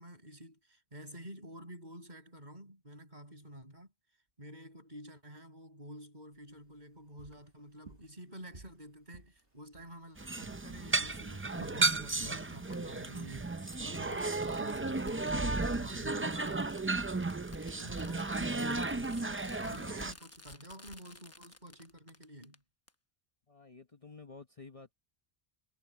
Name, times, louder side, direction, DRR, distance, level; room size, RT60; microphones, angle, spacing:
voice 1, 0.0-3.9 4.4-13.5 13.8-16.8 17.7-22.6, equal, 45° right, 6.6 m, -50 dB
sound 1, 6.3-22.0, right 3 dB, 60° right, 2.2 m, -58 dB
Fireworks, 9.4-9.5 11.0-11.1 12.7-12.8 13.3-13.4 13.7-22.6 22.9-23.0, left 2 dB, 15° left, 0.9 m, -54 dB
sound 2, 10.2-20.1, right 3 dB, 20° right, 0.3 m, -34 dB
voice 2, 23.5-24.9, left 4 dB, 35° left, 1.1 m, -51 dB
omnidirectional pair, 1.1 m